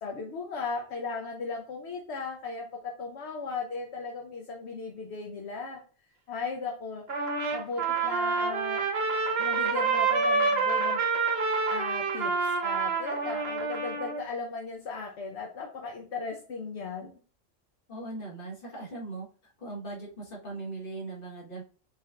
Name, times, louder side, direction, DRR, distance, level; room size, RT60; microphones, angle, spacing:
voice 1, 0.0-5.8 6.3-8.9 9.4-11.0 11.7-17.1, left 4 dB, 60° left, 2 dB, 1.0 m, -37 dB
Trumpet, 7.1-14.2, right 4 dB, 55° right, 1.1 m, -27 dB
voice 2, 17.9-21.6, right 2 dB, 45° left, -2 dB, 1.5 m, -39 dB
5.2 x 3.4 x 2.4 m, 0.40 s
omnidirectional pair, 1.3 m